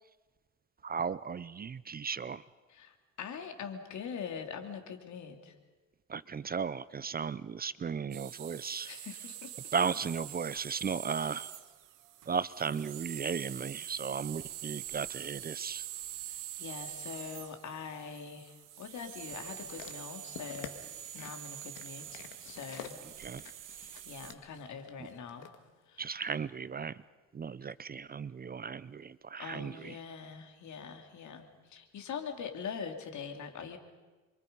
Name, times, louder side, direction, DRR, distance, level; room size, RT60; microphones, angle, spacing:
voice 1, 0.8-2.4 6.1-8.9 9.7-11.5 12.3-15.8 23.2-23.4 26.0-27.0 27.3-30.0, right 6 dB, 30° right, 18 dB, 0.6 m, -35 dB
voice 2, 2.7-5.5 8.8-9.5 16.3-20.7 21.1-23.0 23.7-25.5 25.9-26.2 29.4-33.8, left 6 dB, 65° left, 5 dB, 3.2 m, -43 dB
sound 1, 8.1-24.3, right 12 dB, 85° right, 2.0 m, -45 dB
sound 2, 19.2-25.6 26.3-26.4, left 9 dB, 85° left, 2.1 m, -50 dB
28.5 x 24.5 x 5.5 m, 1.3 s
cardioid pair, 100°, 31 cm